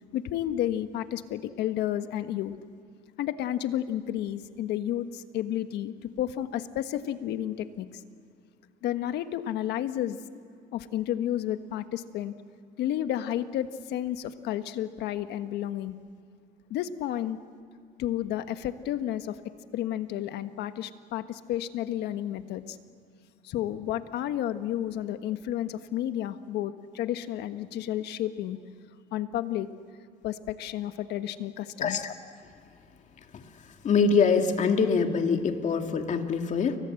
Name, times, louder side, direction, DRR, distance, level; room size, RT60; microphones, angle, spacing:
voice 1, 0.1-2.5 3.2-8.0 8.8-10.2 10.7-12.3 12.8-15.9 16.7-17.4 18.0-19.4 19.7-22.8 23.4-28.6 29.1-29.7 30.2-32.0, left 12 dB, 80° left, 10 dB, 1.4 m, -31 dB
voice 2, 31.8-32.1 33.3-33.4 33.8-36.8, left 5 dB, 45° left, 5 dB, 2.4 m, -24 dB
30.0 x 23.5 x 7.8 m, 2.3 s
cardioid pair, 110°, 17 cm